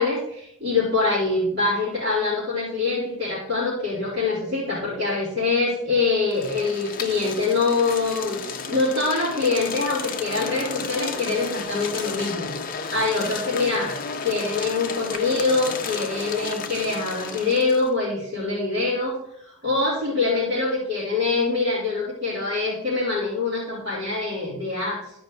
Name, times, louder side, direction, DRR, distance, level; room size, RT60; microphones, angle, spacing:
voice 1, 0.0-13.9 14.2-25.0, left 3 dB, 45° right, -10 dB, 4.0 m, -24 dB
sound 1, 6.3-17.9, left 5 dB, 40° left, 0.7 m, -33 dB
14.0 x 5.3 x 4.1 m, 0.74 s
head